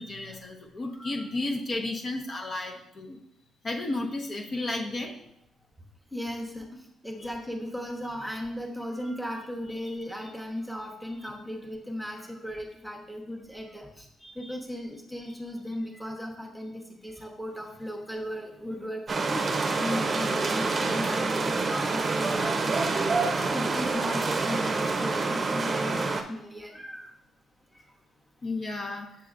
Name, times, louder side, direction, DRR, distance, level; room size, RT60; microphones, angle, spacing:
voice 1, 0.0-3.2 3.6-5.1 7.2-7.3 9.9-10.0 14.2-14.4 28.4-29.2, left 2 dB, 45° left, 1 dB, 0.9 m, -33 dB
voice 2, 6.1-14.1 14.3-27.1 27.7-27.8, equal, ahead, 1 dB, 1.0 m, -36 dB
sound 1, 19.1-26.2, right 3 dB, 35° right, 0.7 m, -27 dB
7.0 x 5.9 x 2.5 m, 0.76 s
cardioid pair, 90°, 0 cm